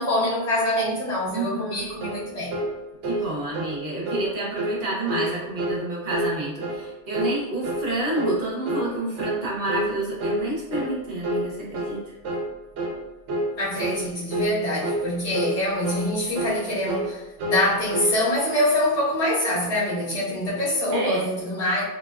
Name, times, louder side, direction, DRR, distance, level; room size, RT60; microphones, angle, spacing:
voice 1, 0.0-2.5 13.6-21.8, left 1 dB, 70° left, -10 dB, 1.6 m, -25 dB
voice 2, 1.3-1.9 3.1-12.1 20.9-21.3, right 2 dB, 50° right, -4 dB, 0.9 m, -29 dB
sound 1, 2.0-2.2 2.5-2.7 3.0-3.3 3.5-3.8 4.1-4.3 4.6-4.8 5.1-5.3 5.6-5.8 6.1-6.3 6.6-6.8 7.1-7.4 7.6-7.9 8.1-8.4 8.7-8.9 9.2-9.4 9.7-9.9 10.2-10.4 10.7-10.9 11.2-11.5 11.7-12.0 12.2-12.5 12.8-13.0 13.3-13.5 13.8-14.0 14.3-14.5 14.8-15.0 15.3-15.6 15.8-16.1 16.3-16.6 16.9-17.1 17.4-17.6 17.9-18.1, right 1 dB, 80° right, 1.0 m, -27 dB
4.0 x 2.1 x 2.3 m, 1.0 s
omnidirectional pair, 1.2 m